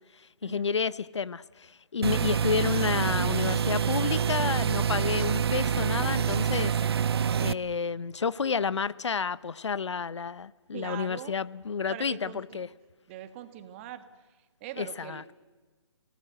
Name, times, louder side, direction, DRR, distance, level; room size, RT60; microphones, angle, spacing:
voice 1, 0.4-6.7 7.4-12.7 14.8-15.2, left 5 dB, 80° left, 0.8 m, -30 dB
sound 1, 2.0-7.5, right 8 dB, 60° right, 0.7 m, -26 dB
voice 2, 10.7-11.3 11.9-12.6 13.1-14.0 14.6-15.3, right 12 dB, 25° right, 1.7 m, -42 dB
27.5 x 18.5 x 7.8 m
hypercardioid pair, 155°, 15 cm